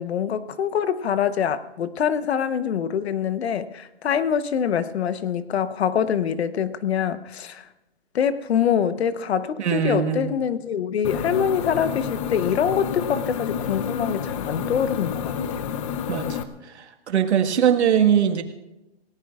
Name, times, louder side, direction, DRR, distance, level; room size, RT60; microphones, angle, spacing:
voice 1, 0.0-7.7 8.1-15.3, left 8 dB, 75° left, 1.1 m, -24 dB
voice 2, 9.6-10.3 16.1-16.4 16.8-18.4, right 8 dB, 85° right, 1.7 m, -21 dB
sound 1, 11.0-16.4, left 7 dB, 30° left, 0.7 m, -29 dB
28.0 x 18.0 x 2.5 m
hypercardioid pair, 155°, 32 cm